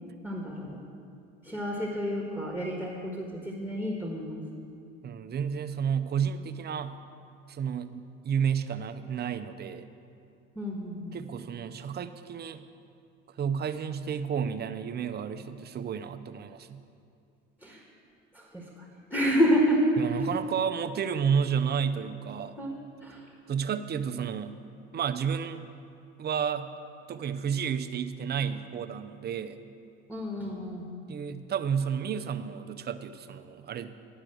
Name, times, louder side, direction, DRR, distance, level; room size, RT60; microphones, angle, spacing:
voice 1, 0.2-0.8 1.4-4.4 10.5-11.2 17.6-17.8 18.3-18.7 19.1-19.8 22.6-22.7 23.0-23.2 30.1-30.9, equal, 5° left, -2 dB, 1.5 m, -29 dB
voice 2, 5.0-7.0 7.5-9.9 11.1-12.6 13.3-16.8 20.0-22.5 23.5-24.5 24.9-25.7 26.2-26.7 27.1-29.6 31.1-33.9, right 7 dB, 35° right, 9 dB, 0.6 m, -31 dB
11.0 x 4.9 x 7.8 m, 2.5 s
supercardioid pair, 80°, 29 cm